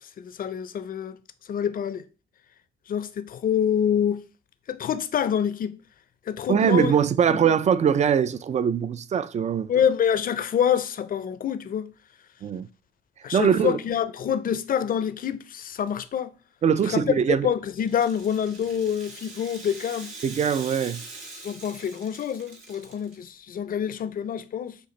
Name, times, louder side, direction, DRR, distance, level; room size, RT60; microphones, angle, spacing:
voice 1, 0.0-1.2 1.5-2.1 2.9-4.2 4.7-5.8 6.3-6.9 7.3-7.4 9.7-11.9 13.2-16.3 16.8-17.2 17.4-20.1 21.4-24.8, left 8 dB, 45° left, 0.5 m, -26 dB
voice 2, 6.5-9.7 12.4-12.7 13.3-13.8 16.6-17.5 20.2-21.0, right 7 dB, 35° right, 0.3 m, -22 dB
Rattle (instrument), 17.8-23.3, right 3 dB, 80° right, 1.5 m, -43 dB
6.5 x 2.5 x 3.1 m
cardioid pair, 90°, 20 cm